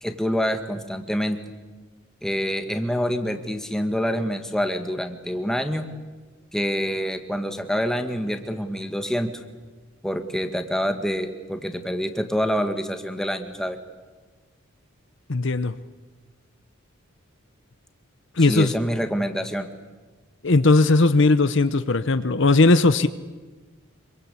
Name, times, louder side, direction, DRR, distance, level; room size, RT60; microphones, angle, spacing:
voice 1, 0.0-1.4 2.2-5.9 6.5-9.4 10.0-13.8 18.5-19.7, equal, 5° left, 6 dB, 1.9 m, -26 dB
voice 2, 15.3-15.8 18.4-18.7 20.4-23.1, left 3 dB, 60° left, 12 dB, 0.8 m, -18 dB
26.5 x 24.0 x 8.5 m, 1.3 s
head